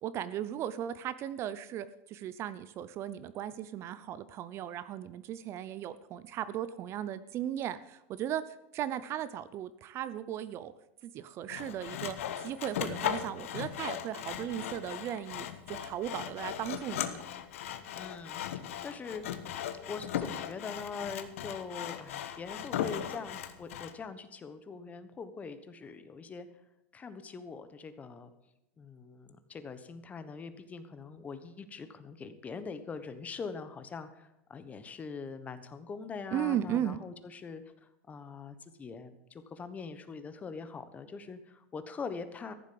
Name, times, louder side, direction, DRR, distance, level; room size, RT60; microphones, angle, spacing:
voice 1, 0.0-10.7 11.0-12.2 12.4-17.1 36.3-37.0, right 11 dB, 40° right, 15 dB, 0.6 m, -36 dB
Sawing, 11.5-23.9, left 10 dB, 85° left, 1.3 m, -38 dB
voice 2, 17.9-19.2 19.8-26.5 26.9-28.3 28.8-37.6 38.1-42.5, left 5 dB, 20° left, 11 dB, 1.2 m, -43 dB
14.5 x 7.3 x 7.7 m, 0.88 s
supercardioid pair, 135°, 7 cm